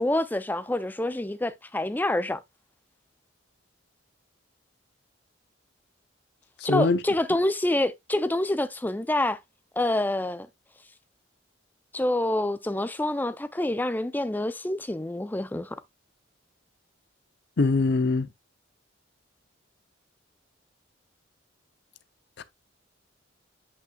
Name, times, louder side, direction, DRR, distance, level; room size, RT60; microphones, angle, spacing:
voice 1, 0.0-2.4 6.6-9.4 9.8-10.5 11.9-15.7, left 1 dB, 10° left, 0.4 m, -27 dB
voice 2, 6.7-7.0 17.6-18.3 22.4-22.5, left 3 dB, 55° left, 0.6 m, -22 dB
8.5 x 5.5 x 2.3 m
head